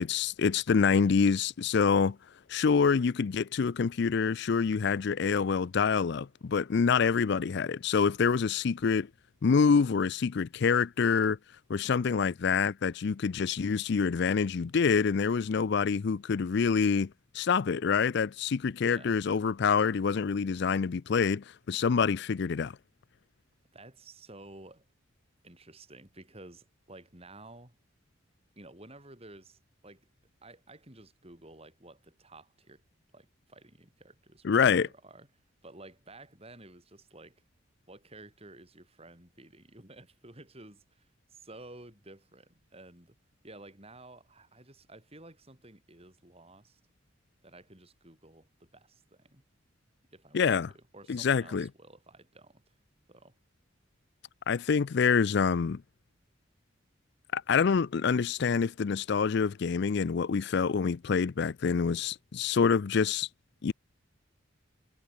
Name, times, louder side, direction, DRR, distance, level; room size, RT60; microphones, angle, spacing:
voice 1, 0.0-2.2 2.5-9.1 9.4-11.4 11.7-22.7 34.4-34.9 50.3-50.7 51.1-51.7 54.5-55.8 57.3-63.3 63.6-63.7, left 5 dB, 60° left, 0.4 m, -26 dB
voice 2, 18.8-19.2 23.7-24.9 25.4-27.8 28.6-30.1 30.4-32.8 33.1-35.3 35.6-37.4 37.9-43.2 43.4-46.8 47.4-49.4 50.1-52.8 53.1-53.4, right 2 dB, 30° right, 5.6 m, -52 dB
head